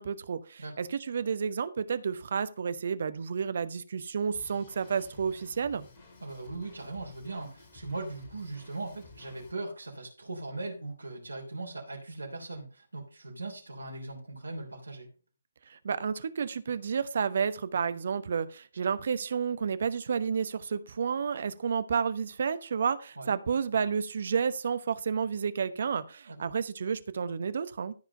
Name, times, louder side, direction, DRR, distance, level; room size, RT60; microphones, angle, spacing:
voice 1, 0.0-5.8 15.7-27.9, right 6 dB, 50° right, 1.0 m, -31 dB
Drum kit, 4.3-9.5, left 3 dB, 30° left, 5.0 m, -53 dB
voice 2, 6.2-15.1 23.2-23.3 26.3-26.4, right 2 dB, 75° right, 3.3 m, -39 dB
14.0 x 5.0 x 5.3 m
figure-of-eight pair, 135°, 0 cm